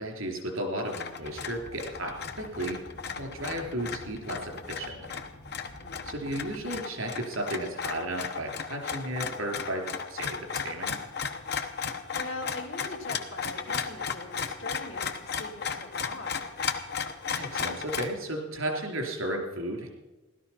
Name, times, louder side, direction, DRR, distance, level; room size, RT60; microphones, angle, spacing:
voice 1, 0.0-2.8 3.2-4.9 6.1-9.8 10.1-11.0 17.4-19.9, right 1 dB, 90° right, 3 dB, 3.5 m, -34 dB
sound 1, 0.8-18.1, left 6 dB, 55° left, 1.1 m, -35 dB
sound 2, 1.2-6.7, equal, 45° right, 5.6 m, -49 dB
voice 2, 5.8-6.1 11.8-16.4, left 2 dB, 70° left, 1 dB, 2.5 m, -41 dB
16.5 x 12.5 x 5.7 m, 1.1 s
head